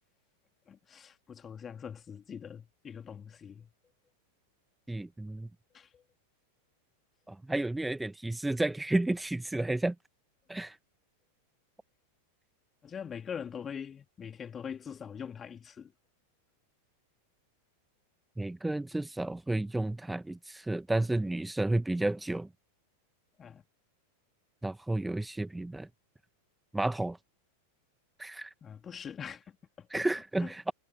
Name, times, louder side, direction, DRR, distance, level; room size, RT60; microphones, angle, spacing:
voice 1, 0.7-3.7 5.7-6.0 12.8-15.9 23.4-23.6 28.6-30.0 30.4-30.5, left 7 dB, 20° left, 2.8 m, -43 dB
voice 2, 4.9-5.5 7.3-9.9 10.5-10.8 18.4-22.5 24.6-25.9 26.7-27.2 28.2-28.5 29.9-30.7, right 2 dB, 5° right, 1.2 m, -31 dB
figure-of-eight pair, 90°, 0 cm